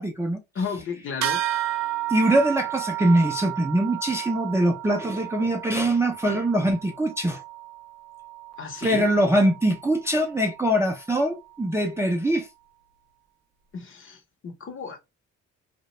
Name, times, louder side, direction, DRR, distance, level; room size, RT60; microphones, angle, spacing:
voice 1, 0.0-0.4 2.1-7.4 8.8-12.5, right 1 dB, 10° right, 0.4 m, -23 dB
voice 2, 0.5-1.4 8.6-9.1 13.7-15.0, left 5 dB, 45° left, 0.7 m, -33 dB
sound 1, 1.2-11.0, right 14 dB, 60° right, 0.5 m, -33 dB
2.3 x 2.1 x 2.8 m
cardioid pair, 90°, 30 cm